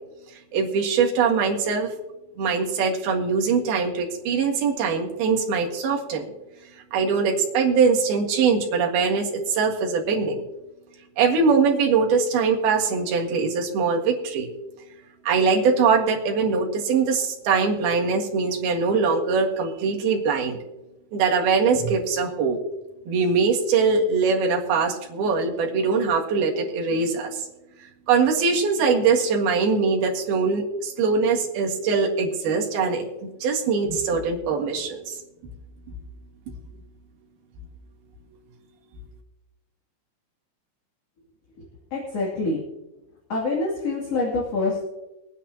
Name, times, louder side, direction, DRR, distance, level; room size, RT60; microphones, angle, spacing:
voice 1, 0.5-1.9 2.4-6.3 6.9-10.4 11.2-14.5 15.2-20.6 21.1-22.6 23.1-27.5 28.1-33.1 33.4-35.2, right 5 dB, 65° right, 0 dB, 3.5 m, -22 dB
voice 2, 41.9-42.6 43.3-44.9, left 3 dB, 40° left, -4 dB, 3.1 m, -25 dB
23.0 x 10.0 x 2.9 m, 0.97 s
omnidirectional pair, 5.0 m